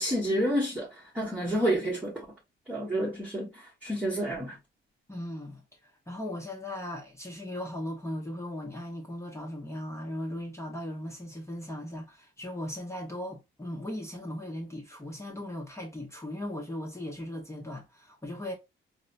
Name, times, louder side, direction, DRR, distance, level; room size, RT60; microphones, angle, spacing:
voice 1, 0.0-2.2 2.7-4.6, equal, 10° right, 1.1 m, -29 dB
voice 2, 5.1-5.6 6.1-18.5, left 1 dB, 15° left, 1.0 m, -38 dB
3.8 x 2.2 x 2.5 m
cardioid pair, 90°, 20 cm